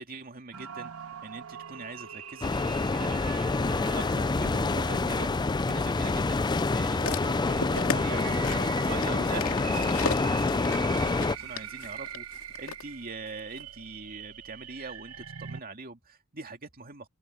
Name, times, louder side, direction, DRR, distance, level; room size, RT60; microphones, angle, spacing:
voice 1, 0.0-12.2 12.6-17.1, right 3 dB, 45° right, 2.5 m, -43 dB
sound 1, 0.5-15.6, right 8 dB, 85° right, 1.0 m, -43 dB
sound 2, 2.4-11.4, left 3 dB, 20° left, 0.4 m, -27 dB
sound 3, 6.5-12.8 13.6-13.7, left 5 dB, 70° left, 2.6 m, -37 dB
head